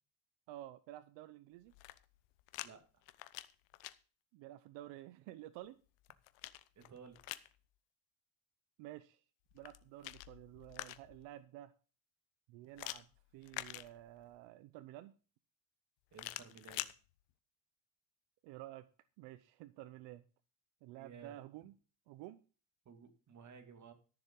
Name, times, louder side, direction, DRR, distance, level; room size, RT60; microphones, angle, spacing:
voice 1, 0.5-1.7 4.3-5.8 8.8-9.2 9.5-11.7 12.5-13.1 13.3-15.1 18.4-18.9 19.2-20.2 20.8-21.7 22.1-22.4, right 14 dB, 85° right, 14 dB, 0.8 m, -51 dB
sound 1, 1.6-2.7 3.0-3.9 5.6-7.5 9.5-11.3 12.8-14.3 16.1-16.9, left 17 dB, 80° left, 0.9 m, -47 dB
voice 2, 2.6-3.0 6.8-7.2 16.1-16.9 20.9-21.4 22.9-23.9, right 6 dB, 40° right, 7 dB, 2.3 m, -56 dB
13.0 x 7.1 x 5.3 m, 0.37 s
cardioid pair, 120°, 43 cm